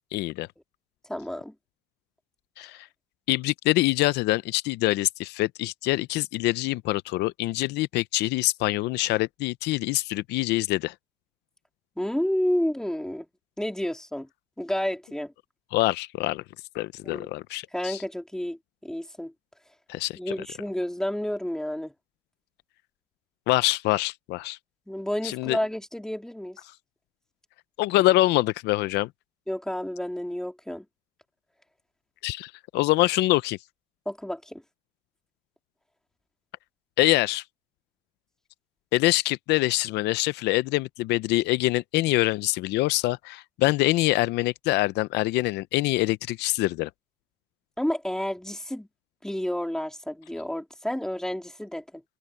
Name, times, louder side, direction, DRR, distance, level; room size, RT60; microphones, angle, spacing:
voice 1, 0.1-0.5 2.6-2.9 3.3-10.9 15.7-16.4 16.7-18.0 19.9-20.2 23.5-24.6 25.2-25.6 27.8-29.1 32.2-33.6 37.0-37.4 38.9-46.9, left 18 dB, 85° left, 0.6 m, -25 dB
voice 2, 1.0-1.5 12.0-13.3 13.6-14.3 14.6-15.3 17.0-17.3 17.7-19.3 20.2-21.9 24.9-26.6 29.5-30.8 34.0-34.6 47.8-48.9 49.2-52.0, left 1 dB, 5° left, 3.4 m, -30 dB
cardioid pair, 110°, 17 cm